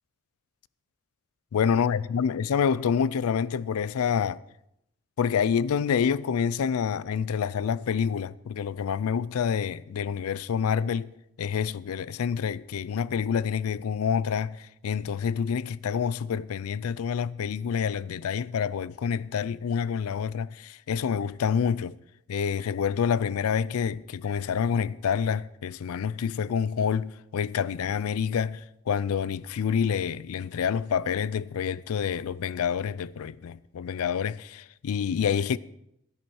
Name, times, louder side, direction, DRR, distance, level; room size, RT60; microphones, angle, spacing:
voice 1, 1.5-4.4 5.2-11.1 11.4-22.0 22.3-35.6, left 7 dB, 85° left, 0.4 m, -27 dB
13.0 x 11.0 x 4.5 m
head